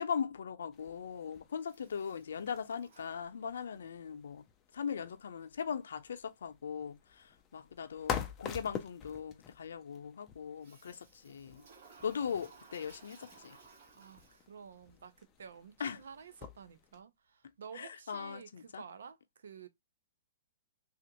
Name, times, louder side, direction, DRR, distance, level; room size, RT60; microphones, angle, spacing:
voice 1, 0.0-4.4 4.7-11.6 12.0-13.6 15.8-16.0 17.8-18.8, left 7 dB, 85° left, 0.6 m, -39 dB
sound 1, 0.7-17.0, left 8 dB, 15° left, 0.4 m, -47 dB
Toilet flush, 1.6-3.8 10.6-14.7, right 5 dB, 55° right, 1.5 m, -59 dB
voice 2, 13.9-19.7, right 6 dB, 85° right, 0.7 m, -51 dB
3.5 x 2.5 x 2.9 m
hypercardioid pair, 165°, 0 cm